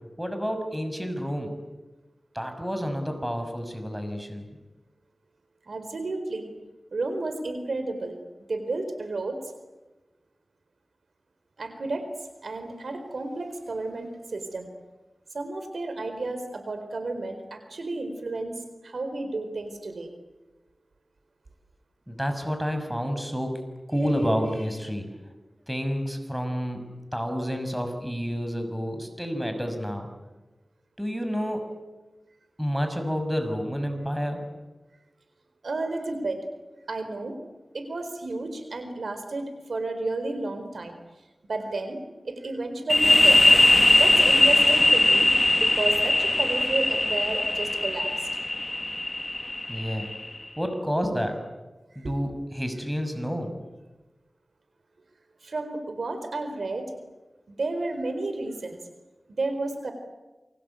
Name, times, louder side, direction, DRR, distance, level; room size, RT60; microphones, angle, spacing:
voice 1, 0.2-1.5 2.3-4.5 22.1-23.5 23.9-25.0 25.7-26.8 27.1-30.1 31.0-31.6 32.6-34.4 49.7-50.1 50.6-51.4 52.0-53.5, equal, 5° right, 7 dB, 6.1 m, -29 dB
voice 2, 5.7-6.5 6.9-8.2 8.5-9.4 11.6-12.0 12.4-14.7 15.3-20.1 35.6-36.4 36.9-37.4 37.7-41.0 41.5-42.0 42.2-43.4 44.0-48.1 52.0-52.1 55.4-56.9 57.5-58.8 59.3-59.9, right 2 dB, 85° right, 8 dB, 4.3 m, -32 dB
sound 1, 42.9-50.4, left 2 dB, 35° left, 1.3 m, -20 dB
29.0 x 24.0 x 8.5 m, 1.1 s
wide cardioid pair, 55°, 0 cm